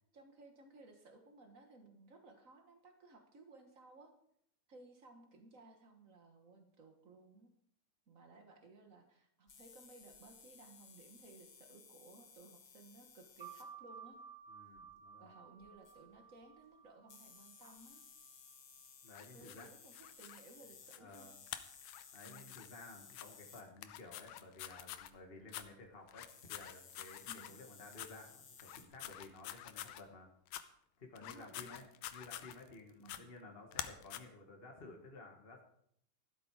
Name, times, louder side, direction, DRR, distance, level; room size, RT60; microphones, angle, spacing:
voice 1, 0.1-4.1 4.7-7.5 8.1-14.2 15.2-18.0 19.3-21.3 22.2-22.5 27.3-27.6 31.2-31.9 33.0-33.3, right 3 dB, 85° right, 5 dB, 0.7 m, -59 dB
sound 1, 9.5-13.7 14.8-14.9 15.6-16.1 17.1-24.1 24.9-25.3 25.8-25.9 26.3-28.8, left 6 dB, 45° left, 1.5 m, -59 dB
sound 2, 13.4-18.6, right 7 dB, 10° right, 2.7 m, -55 dB
voice 2, 14.5-15.4 19.0-19.7 21.0-21.4 22.1-30.3 31.0-31.8 32.1-35.6, left 2 dB, 30° left, 2 dB, 1.1 m, -54 dB
sound 3, 19.1-20.4 20.9-21.2 21.5-22.7 23.1-23.3 23.8-25.1 25.5-25.7 26.1-27.5 27.9-28.1 28.6-30.0 30.5-30.6 31.2-32.7 33.1-33.2 33.7-34.2, left 13 dB, 85° left, 2.4 m, -47 dB
14.5 x 12.0 x 4.8 m, 0.70 s
omnidirectional pair, 3.8 m